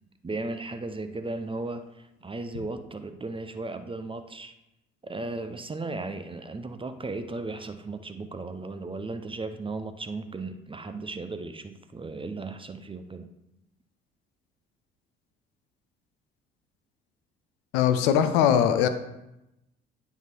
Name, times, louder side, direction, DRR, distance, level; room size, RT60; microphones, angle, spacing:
voice 1, 0.2-4.5 5.0-13.3, right 3 dB, 15° right, 9 dB, 0.7 m, -36 dB
voice 2, 17.7-18.9, left 9 dB, 65° left, 9 dB, 0.7 m, -21 dB
9.2 x 5.5 x 4.5 m, 0.90 s
figure-of-eight pair, 50°, 32 cm